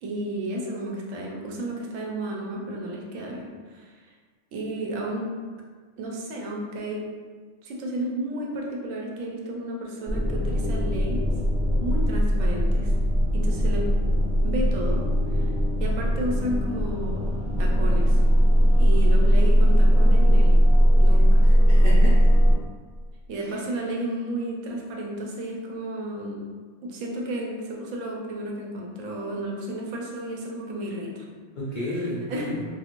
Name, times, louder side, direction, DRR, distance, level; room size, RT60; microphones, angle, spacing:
voice 1, 0.0-4.0 4.5-5.3 6.0-7.1 7.6-11.3 11.8-12.9 13.3-13.8 14.4-15.5 15.8-17.3 17.6-18.2 18.8-20.6 20.9-21.5 23.3-26.4 26.8-31.2 31.9-32.6, right 1 dB, 80° right, -1 dB, 1.0 m, -32 dB
sound 1, 10.1-22.5, equal, 5° right, 0.9 m, -19 dB
voice 2, 21.4-22.3 23.5-23.6 31.5-32.7, left 1 dB, 75° left, -7 dB, 0.4 m, -32 dB
2.5 x 2.4 x 2.9 m, 1.6 s
omnidirectional pair, 1.4 m